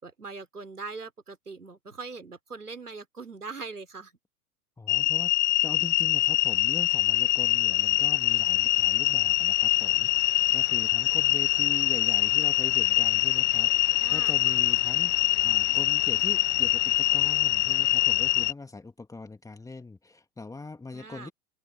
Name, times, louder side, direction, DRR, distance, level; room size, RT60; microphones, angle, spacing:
voice 1, 0.0-4.1 14.0-14.6 20.9-21.3, right 4 dB, 85° right, 4.2 m, -41 dB
voice 2, 4.8-5.3 5.6-21.3, left 3 dB, 5° left, 2.4 m, -41 dB
sound 1, 4.9-18.5, left 15 dB, 50° left, 1.0 m, -24 dB
figure-of-eight pair, 100°, 44 cm